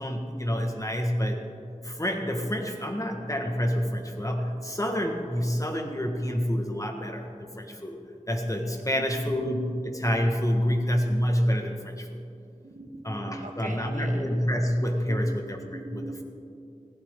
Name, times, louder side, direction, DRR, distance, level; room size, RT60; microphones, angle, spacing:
voice 1, 0.0-1.4 1.8-8.0 8.3-12.2 13.0-16.0, equal, 25° left, 3 dB, 1.6 m, -28 dB
voice 2, 8.9-9.4 12.6-14.3 15.1-15.3 15.6-16.2, right 2 dB, 80° right, 2 dB, 1.6 m, -41 dB
17.0 x 15.0 x 3.8 m, 2.5 s
wide cardioid pair, 45°, 13 cm